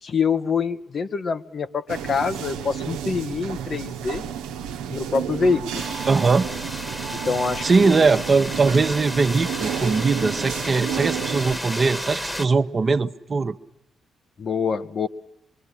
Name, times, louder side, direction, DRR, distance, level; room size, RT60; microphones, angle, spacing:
voice 1, 0.0-4.2 4.9-5.8 7.2-8.0 14.4-15.1, left 5 dB, 50° left, 1.2 m, -25 dB
sound 1, 1.9-11.6, right 9 dB, 75° right, 1.0 m, -31 dB
sound 2, 5.7-12.5, equal, 10° left, 1.6 m, -33 dB
voice 2, 6.1-6.5 7.6-13.5, right 4 dB, 40° right, 1.1 m, -20 dB
25.5 x 23.5 x 10.0 m
hypercardioid pair, 40°, 0 cm